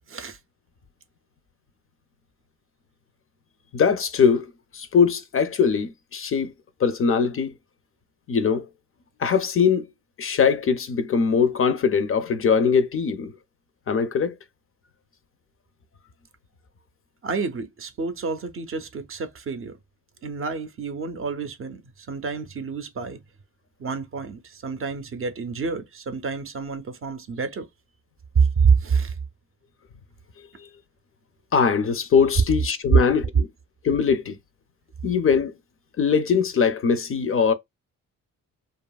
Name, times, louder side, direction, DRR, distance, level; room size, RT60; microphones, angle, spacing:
voice 1, 0.1-0.4 17.2-19.8 20.2-23.2 23.8-27.7 28.3-29.2, right 5 dB, 40° right, 0.5 m, -27 dB
voice 2, 3.7-6.5 6.8-7.6 8.3-8.7 9.2-9.9 10.2-13.3 13.9-14.3 30.6-30.7 31.5-33.5 33.8-34.4 35.0-35.5 36.0-37.5, left 6 dB, 40° left, 0.4 m, -21 dB
2.7 x 2.4 x 2.2 m
cardioid pair, 95°, 34 cm